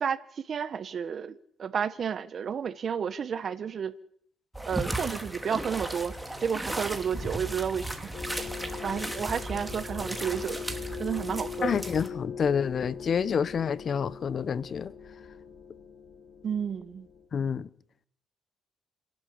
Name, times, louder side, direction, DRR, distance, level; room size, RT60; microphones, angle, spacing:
voice 1, 0.0-3.9 4.6-6.1 6.4-8.1 8.8-10.6 11.0-11.8 16.4-17.1, right 7 dB, 50° right, 1.1 m, -31 dB
sound 1, 4.5-12.1, right 1 dB, 5° right, 2.7 m, -36 dB
sound 2, 4.6-11.6, left 2 dB, 25° left, 6.4 m, -56 dB
sound 3, 8.1-17.3, left 7 dB, 80° left, 3.3 m, -41 dB
voice 2, 11.6-14.9 17.3-17.7, left 7 dB, 50° left, 0.9 m, -28 dB
29.5 x 11.5 x 8.4 m
cardioid pair, 90°, 0 cm